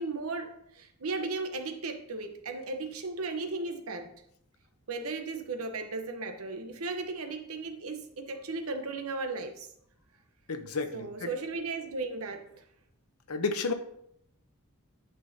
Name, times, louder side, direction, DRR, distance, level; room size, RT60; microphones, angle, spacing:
voice 1, 0.0-4.1 4.9-9.7 10.9-12.6, right 3 dB, 75° right, 6 dB, 1.0 m, -36 dB
voice 2, 10.5-11.3 13.3-13.7, left 4 dB, 80° left, 9 dB, 0.8 m, -31 dB
10.5 x 5.5 x 2.8 m, 0.73 s
head